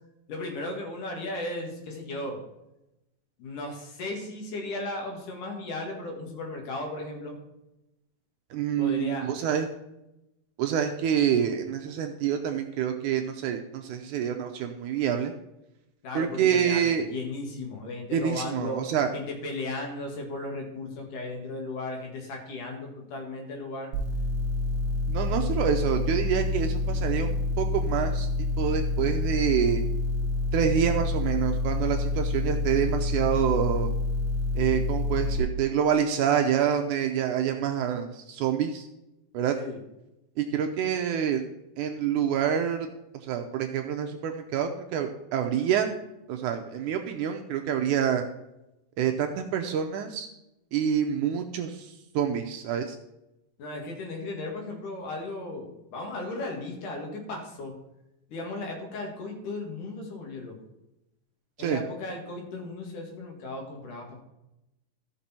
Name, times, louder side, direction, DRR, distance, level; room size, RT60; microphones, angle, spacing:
voice 1, 0.3-2.4 3.4-7.4 8.8-9.3 16.0-18.9 19.1-23.9 39.6-39.8 53.6-57.7 58.3-60.6 61.6-64.2, left 2 dB, 65° left, 1 dB, 3.3 m, -36 dB
voice 2, 8.5-9.7 10.6-15.3 16.2-17.0 18.1-19.1 25.1-28.3 28.6-29.8 30.5-33.9 34.6-38.9 39.3-39.5 40.4-41.4 41.8-42.9 43.2-45.9 46.3-48.2 49.0-50.3 50.7-53.0 61.6-61.8, right 8 dB, 80° right, 4 dB, 1.9 m, -27 dB
sound 1, 23.9-35.4, left 2 dB, 45° right, 2.2 m, -28 dB
13.5 x 6.1 x 4.3 m, 0.90 s
omnidirectional pair, 4.2 m